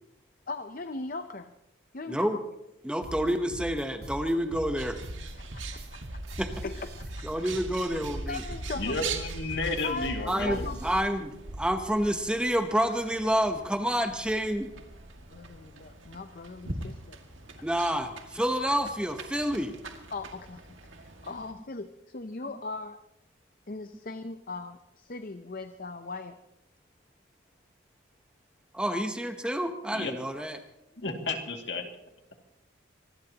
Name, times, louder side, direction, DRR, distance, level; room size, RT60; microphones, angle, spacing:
voice 1, 0.5-1.5 1.9-2.3 5.2-6.2 6.6-7.3 8.3-9.0 9.8-10.8 15.3-17.2 17.6-17.7 20.1-20.6 21.0-23.0 23.7-26.4, left 3 dB, 45° left, 9 dB, 0.6 m, -39 dB
voice 2, 2.1-2.4 2.8-5.0 6.4-6.5 7.2-8.4 10.3-14.7 17.6-19.7 28.7-30.6, equal, 5° right, 6 dB, 0.9 m, -28 dB
sound 1, 3.0-11.0, right 1 dB, 50° right, 1.4 m, -41 dB
Bird, 4.8-21.5, right 3 dB, 75° right, 2.1 m, -42 dB
voice 3, 8.7-10.7 29.9-30.1 31.0-31.8, left 2 dB, 60° left, 3 dB, 2.3 m, -32 dB
25.0 x 19.5 x 2.9 m, 0.86 s
head